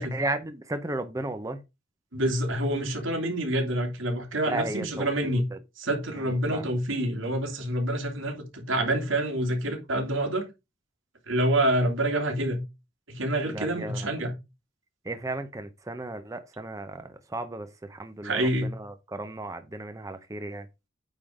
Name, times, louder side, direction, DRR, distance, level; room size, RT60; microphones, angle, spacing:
voice 1, 0.0-1.6 4.5-5.6 6.2-6.6 13.5-14.1 15.0-20.7, right 2 dB, 15° right, 0.7 m, -35 dB
voice 2, 2.1-5.4 5.8-10.5 11.3-12.6 13.1-14.3 18.2-18.7, right 1 dB, 90° right, 2.6 m, -27 dB
9.0 x 3.8 x 4.9 m
head